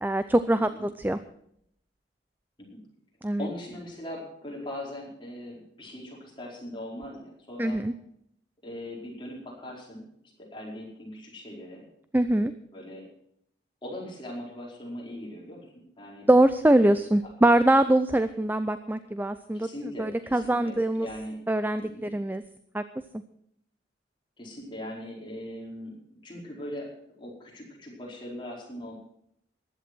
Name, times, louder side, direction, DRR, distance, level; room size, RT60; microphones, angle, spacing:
voice 1, 0.0-1.2 3.2-3.5 7.6-7.9 12.1-12.5 16.3-19.7 20.0-21.1 21.5-22.4 22.7-22.8, right 1 dB, 10° right, 12 dB, 0.4 m, -23 dB
voice 2, 3.4-7.8 8.6-10.0 10.4-11.8 12.7-13.0 13.8-16.3 19.5-21.4 21.8-22.1 24.4-26.9 27.2-28.9, left 1 dB, 25° left, -3 dB, 4.8 m, -40 dB
15.0 x 11.0 x 6.2 m, 0.71 s
head